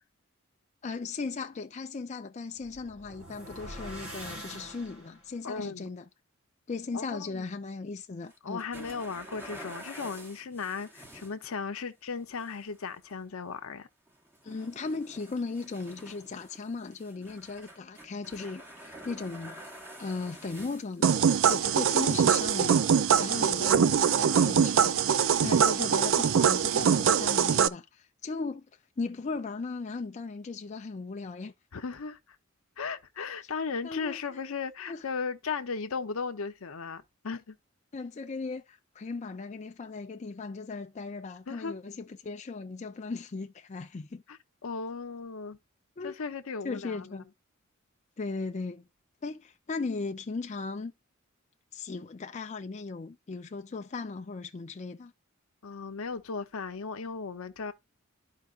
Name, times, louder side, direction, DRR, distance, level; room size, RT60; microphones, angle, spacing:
voice 1, 0.8-6.0 6.7-8.6 14.4-19.6 20.0-21.2 21.5-22.8 23.2-28.7 29.0-31.5 33.8-34.4 34.9-35.0 37.9-44.2 46.0-46.2 46.6-47.2 48.2-48.9 49.2-50.9 51.7-55.1, left 4 dB, 35° left, 0.4 m, -37 dB
sound 1, 2.5-5.4, equal, 80° right, 2.2 m, -44 dB
voice 2, 5.4-5.9 6.9-7.4 8.4-13.9 31.7-32.2 32.8-37.6 41.5-41.7 44.3-45.6 46.0-47.2 55.6-57.7, left 5 dB, 80° left, 0.7 m, -36 dB
sound 2, 8.3-11.5 12.4-13.1 13.6-13.8 14.1-21.6 22.4-22.5 23.2-23.3 24.5-24.6, right 1 dB, 10° right, 1.1 m, -48 dB
sound 3, 21.0-27.7, right 7 dB, 65° right, 0.4 m, -23 dB
12.5 x 4.7 x 2.4 m
head